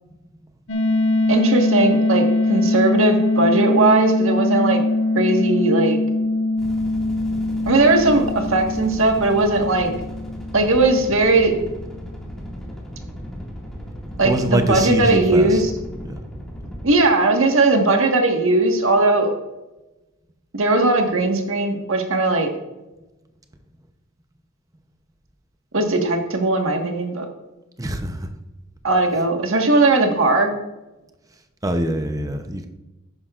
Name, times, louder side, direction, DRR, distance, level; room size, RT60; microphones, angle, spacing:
sound 1, 0.7-11.4, left 2 dB, 65° left, 1.3 m, -22 dB
voice 1, 1.3-4.8 5.1-6.0 7.6-9.9 10.5-11.5 14.2-15.7 16.8-19.3 20.5-22.5 25.7-27.3 28.8-30.5, right 2 dB, 65° right, 3 dB, 1.5 m, -18 dB
sound 2, 6.6-16.8, equal, ahead, 2.0 m, -36 dB
voice 2, 14.2-15.6 16.0-16.2 27.8-28.3 31.6-32.7, right 1 dB, 15° right, 6 dB, 0.7 m, -23 dB
11.0 x 9.9 x 2.5 m, 1.0 s
head